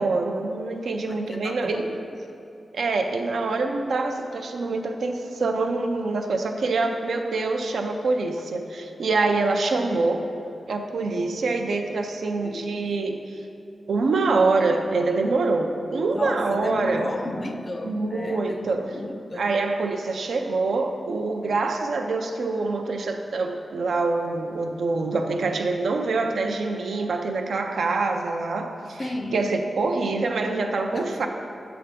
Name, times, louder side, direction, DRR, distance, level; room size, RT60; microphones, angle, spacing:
voice 1, 0.0-1.9 2.7-10.3 10.7-13.2 13.9-17.1 17.8-18.9 19.3-31.3, right 3 dB, 85° right, 4 dB, 0.4 m, -25 dB
voice 2, 1.1-2.0 12.4-12.6 16.1-19.5 29.0-29.4 30.9-31.3, left 1 dB, 35° left, 5 dB, 0.4 m, -34 dB
6.6 x 3.4 x 5.1 m, 2.7 s
wide cardioid pair, 120°, 0 cm